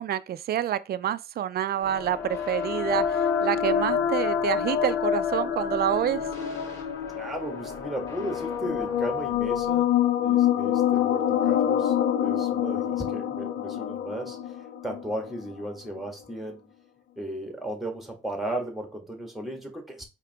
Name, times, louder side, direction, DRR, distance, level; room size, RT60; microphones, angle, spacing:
voice 1, 0.0-6.3, right 11 dB, 50° right, 0.4 m, -28 dB
sound 1, 1.8-9.8, left 1 dB, 20° left, 2.9 m, -45 dB
sound 2, 1.9-15.5, left 9 dB, 75° left, 0.7 m, -26 dB
voice 2, 7.1-9.9 10.2-14.5 14.8-16.7 17.2-20.0, right 1 dB, ahead, 1.6 m, -35 dB
4.8 x 3.0 x 3.5 m
cardioid pair, 90°, 20 cm